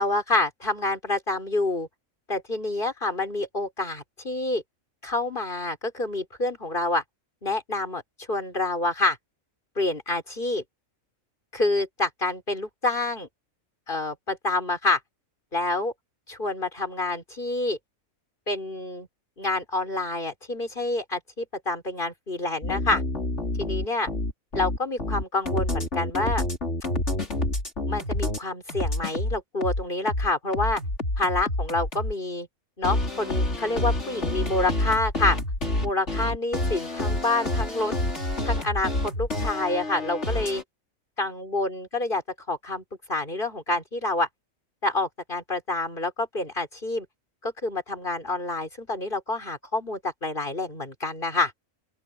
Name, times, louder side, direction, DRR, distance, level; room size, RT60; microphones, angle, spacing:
voice 1, 0.0-1.9 2.3-4.6 5.0-7.0 7.4-8.0 8.3-9.2 9.8-10.6 11.5-13.3 13.9-15.0 15.5-15.9 16.3-17.8 18.5-19.1 19.4-23.0 23.6-24.1 24.5-26.4 27.9-30.8 31.2-32.5 32.8-35.4 35.8-37.9 38.4-40.6 41.2-42.2 42.5-42.8 43.1-44.3 44.8-47.1 47.4-51.5, left 2 dB, 35° left, 5.2 m, -27 dB
sound 1, 22.6-28.4 28.7-32.1 32.8-40.6, left 1 dB, 55° left, 4.7 m, -28 dB
open air
omnidirectional pair, 1.4 m